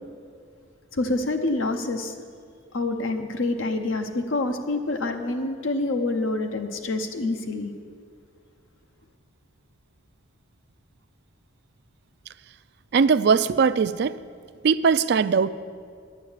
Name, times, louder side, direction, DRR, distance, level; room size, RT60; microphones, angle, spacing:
voice 1, 0.9-2.2 2.7-7.7, left 2 dB, 75° left, 5 dB, 0.8 m, -27 dB
voice 2, 12.9-14.2 14.6-15.5, right 5 dB, 55° right, 15 dB, 0.3 m, -20 dB
10.5 x 9.4 x 7.3 m, 2.1 s
head